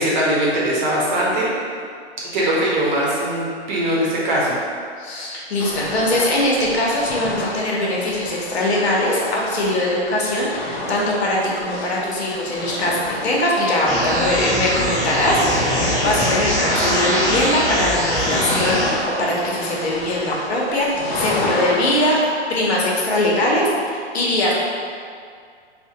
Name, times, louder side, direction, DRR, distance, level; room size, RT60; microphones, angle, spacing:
voice 1, 0.0-1.5 2.3-4.6, right 1 dB, 40° right, -5 dB, 0.9 m, -20 dB
voice 2, 5.0-20.9 21.1-22.2 22.5-24.5, left 1 dB, 65° left, -4 dB, 0.9 m, -21 dB
sound 1, 5.6-22.2, left 2 dB, 45° left, 0.7 m, -31 dB
sound 2, 13.9-18.9, equal, 10° left, 0.3 m, -21 dB
4.3 x 2.2 x 2.7 m, 2.2 s
hypercardioid pair, 140°, 35 cm